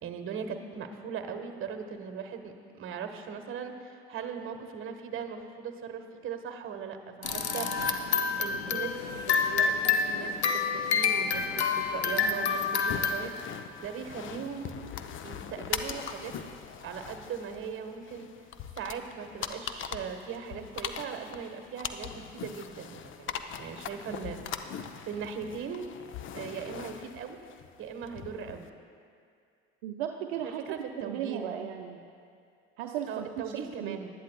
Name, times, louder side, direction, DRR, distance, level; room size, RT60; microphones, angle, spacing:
voice 1, 0.0-7.7 8.4-14.7 15.2-16.3 16.8-18.3 18.7-24.4 25.0-25.9 26.3-27.4 27.8-28.7 30.4-31.6 33.1-34.1, right 6 dB, 40° right, 6 dB, 1.2 m, -39 dB
sound 1, 7.2-13.1, left 5 dB, 85° left, 0.8 m, -28 dB
sound 2, 12.9-28.7, left 8 dB, 40° left, 0.7 m, -41 dB
voice 2, 29.8-30.6 31.0-32.0 32.8-34.0, right 10 dB, 70° right, 3 dB, 0.7 m, -36 dB
19.5 x 12.0 x 2.3 m, 2.3 s
figure-of-eight pair, 60°, 32 cm